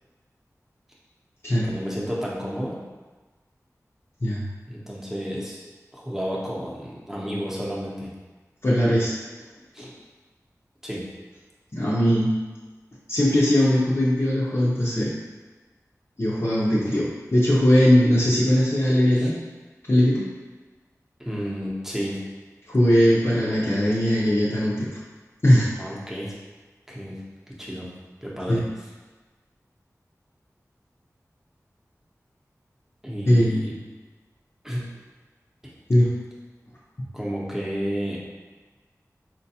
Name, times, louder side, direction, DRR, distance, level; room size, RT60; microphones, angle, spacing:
voice 1, 1.6-2.8 4.7-5.6 5.9-8.1 9.7-9.9 10.8-11.1 19.1-19.3 21.2-22.2 25.8-26.3 26.9-27.2 27.5-27.9 28.2-28.6 33.0-33.7 34.6-34.8 35.6-35.7 37.1-38.2, equal, 5° right, -5 dB, 0.8 m, -31 dB
voice 2, 8.6-9.1 9.8-9.9 11.7-12.4 13.1-15.1 16.2-19.4 19.9-20.3 22.7-24.9 25.4-25.7 28.5-28.6 33.2-33.7 35.9-36.1, equal, 45° left, -8 dB, 0.6 m, -20 dB
4.4 x 2.2 x 2.8 m, 1.3 s
wide cardioid pair, 55°, 6 cm